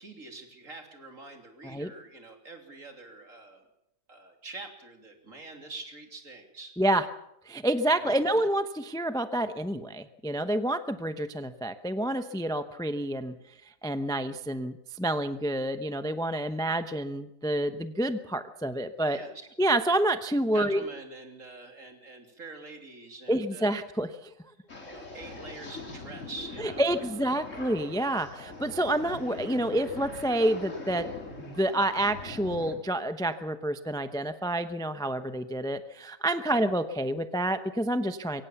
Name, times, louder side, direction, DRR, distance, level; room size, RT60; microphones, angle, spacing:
voice 1, 0.0-3.6 4.1-6.7 7.9-8.4 19.1-19.5 20.5-23.9 24.9-27.2 36.4-36.6, right 3 dB, 55° right, 4 dB, 3.4 m, -45 dB
voice 2, 7.5-13.3 13.8-19.2 19.6-20.8 23.3-24.3 26.6-31.1 31.4-38.4, right 1 dB, 5° left, 10 dB, 0.6 m, -28 dB
sound 1, 24.7-32.7, left 2 dB, 50° left, 3.8 m, -42 dB
23.5 x 17.5 x 7.1 m, 0.81 s
omnidirectional pair, 1.6 m